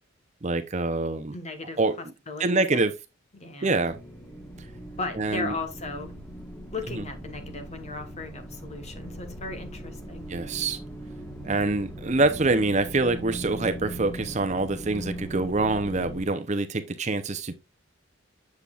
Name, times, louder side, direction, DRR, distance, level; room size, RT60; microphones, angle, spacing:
voice 1, 0.4-1.4 1.8-1.9 2.4-2.9 3.6-4.0 5.2-5.5 7.0-7.1 10.3-10.8 11.4-17.5, right 3 dB, 35° right, 0.6 m, -25 dB
voice 2, 1.3-2.8 3.3-3.8 5.0-6.1 6.7-10.3, left 3 dB, 35° left, 1.2 m, -36 dB
sound 1, 3.8-16.3, right 1 dB, 10° left, 1.2 m, -40 dB
8.0 x 6.9 x 2.4 m
head